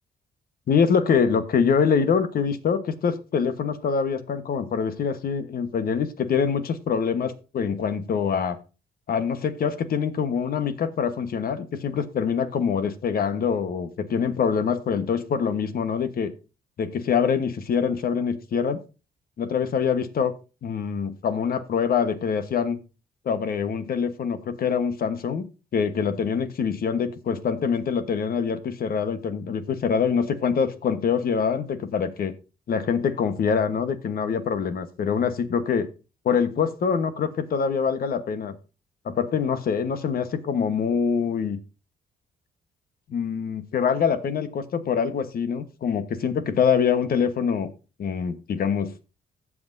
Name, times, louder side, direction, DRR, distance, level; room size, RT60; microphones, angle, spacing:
voice 1, 0.7-8.6 9.1-16.3 16.8-18.8 19.4-20.3 20.6-22.8 23.2-25.5 25.7-32.3 32.7-35.9 36.2-38.5 39.0-41.6 43.1-47.7 48.0-48.9, left 6 dB, 60° left, 10 dB, 1.2 m, -24 dB
16.0 x 6.1 x 2.7 m, 0.32 s
cardioid pair, 90°, 17 cm